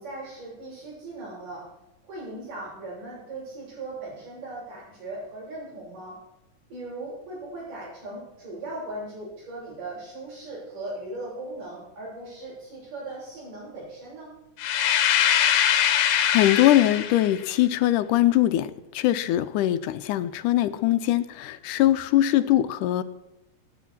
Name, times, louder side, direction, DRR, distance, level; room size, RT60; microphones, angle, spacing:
voice 1, 0.0-1.7 2.0-6.2 6.7-14.3, right 2 dB, 85° right, -11 dB, 8.7 m, -38 dB
sound 1, 14.6-17.4, left 10 dB, 70° left, 2.2 m, -22 dB
voice 2, 16.3-23.0, left 14 dB, 85° left, 12 dB, 2.2 m, -22 dB
19.5 x 10.0 x 4.4 m, 0.94 s
omnidirectional pair, 3.6 m